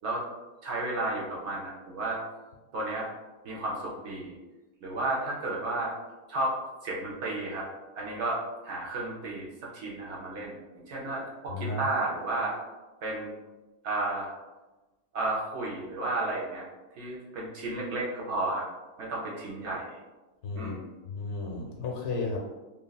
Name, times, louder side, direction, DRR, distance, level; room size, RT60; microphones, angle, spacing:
voice 1, 0.6-2.2 2.7-3.1 3.4-4.3 4.8-5.9 6.3-6.6 6.8-7.7 8.0-12.6 13.0-13.3 13.8-14.3 15.1-16.7 17.0-18.6 19.0-19.9 20.5-20.9, right 2 dB, 65° right, -3 dB, 0.7 m, -32 dB
voice 2, 11.5-11.8 20.4-20.8 21.1-22.4, left 3 dB, 80° left, -1 dB, 1.1 m, -33 dB
3.2 x 2.3 x 2.2 m, 1.1 s
omnidirectional pair, 1.6 m